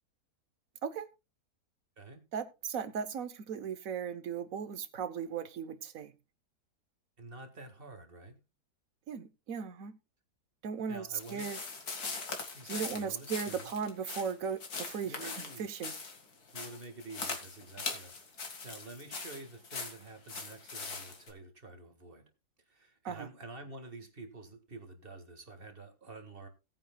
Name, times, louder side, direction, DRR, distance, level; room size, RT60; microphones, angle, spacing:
voice 1, 2.3-6.1 9.1-10.0 10.6-11.6 12.7-15.2 15.6-15.9 23.0-23.3, right 6 dB, 60° right, 12 dB, 1.4 m, -37 dB
voice 2, 7.2-8.4 10.9-11.4 12.5-13.7 15.0-15.7 16.5-22.2 22.7-26.5, right 3 dB, 35° right, 6 dB, 1.9 m, -49 dB
sound 1, 11.2-21.3, left 4 dB, 70° left, 2.4 m, -41 dB
18.0 x 9.3 x 2.3 m, 0.26 s
omnidirectional pair, 1.7 m